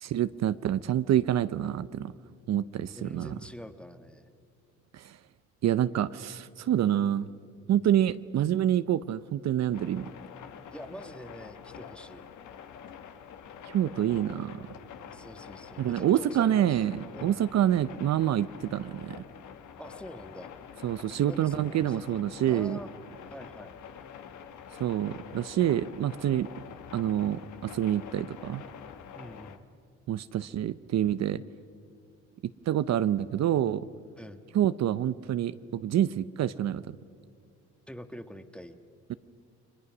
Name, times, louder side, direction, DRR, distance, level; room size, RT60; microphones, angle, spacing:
voice 1, 0.0-2.1 2.5-3.3 4.9-5.2 5.6-7.3 7.7-10.1 13.7-14.6 15.8-19.2 20.8-22.8 24.8-26.5 26.9-28.6 30.1-31.4 32.7-33.8 34.5-37.0 39.1-39.2, right 11 dB, 60° right, 14 dB, 0.7 m, -27 dB
voice 2, 3.0-4.3 10.7-12.2 15.1-17.4 19.8-20.5 21.2-22.2 22.5-22.9 23.3-23.8 29.1-29.6 34.2-34.4 37.9-38.8, equal, 5° left, 8 dB, 1.5 m, -45 dB
sound 1, 9.7-29.6, left 7 dB, 75° left, 1.6 m, -46 dB
29.5 x 22.5 x 6.1 m, 2.3 s
cardioid pair, 90°, 30 cm